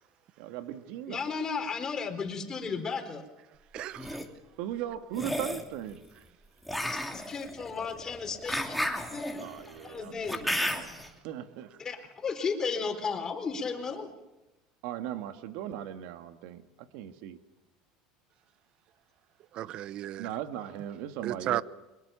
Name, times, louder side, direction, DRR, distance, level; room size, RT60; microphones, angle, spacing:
voice 1, 0.4-1.3 4.6-6.0 9.4-11.0 11.2-11.7 14.8-17.4 20.2-21.6, right 11 dB, 75° right, 1.9 m, -38 dB
voice 2, 1.1-3.2 6.9-9.5 9.8-10.5 11.8-12.0 12.2-14.2, left 5 dB, 30° left, 4.1 m, -34 dB
voice 3, 3.7-4.2 19.5-20.3 21.2-21.6, right 13 dB, 55° right, 0.8 m, -34 dB
sound 1, 3.8-4.2 5.1-5.7 6.7-11.1, left 1 dB, ahead, 3.0 m, -33 dB
23.5 x 22.0 x 7.1 m
supercardioid pair, 110°, 2 cm